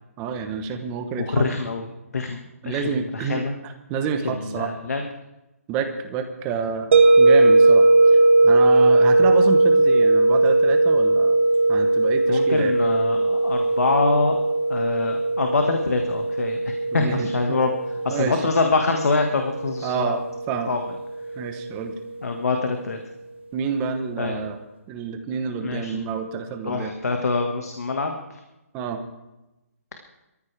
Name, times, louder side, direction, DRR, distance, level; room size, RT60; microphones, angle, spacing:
voice 1, 0.2-1.5 2.6-4.7 5.7-7.9 8.1-11.4 11.7-12.7 16.9-17.6 18.1-18.5 19.8-20.2 20.5-20.7 21.4-21.9 23.5-24.6 24.9-26.9 28.7-29.0, right 6 dB, 15° right, 7 dB, 1.0 m, -29 dB
voice 2, 1.2-1.9 2.1-2.4 2.6-3.5 4.2-5.0 12.3-14.4 14.7-17.7 18.0-20.1 20.7-20.8 22.2-23.0 24.2-24.4 25.6-26.1 26.6-28.4, left 3 dB, 90° left, 4 dB, 1.7 m, -25 dB
sound 1, 6.9-21.8, right 2 dB, 50° right, 0.9 m, -19 dB
22.5 x 14.0 x 3.4 m, 0.98 s
hypercardioid pair, 170°, 8 cm